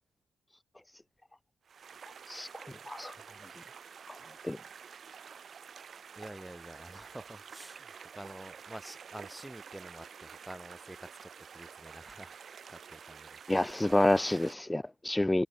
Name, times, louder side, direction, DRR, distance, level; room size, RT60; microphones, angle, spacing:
sound 1, 1.6-14.5, right 7 dB, 50° right, 6.3 m, -49 dB
voice 1, 6.2-12.4 12.7-13.5, right 1 dB, 10° right, 8.0 m, -48 dB
voice 2, 13.5-15.5, left 1 dB, 10° left, 0.6 m, -28 dB
cardioid pair, 90°, 0 cm